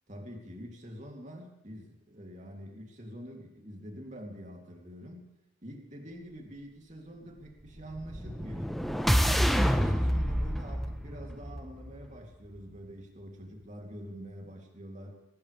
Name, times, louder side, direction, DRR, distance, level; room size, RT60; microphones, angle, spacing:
voice 1, 0.1-5.3 5.6-8.8 9.2-15.1, equal, 40° right, 1 dB, 3.0 m, -45 dB
sound 1, 7.9-12.1, equal, ahead, 0.9 m, -28 dB
21.0 x 19.0 x 3.4 m, 0.93 s
head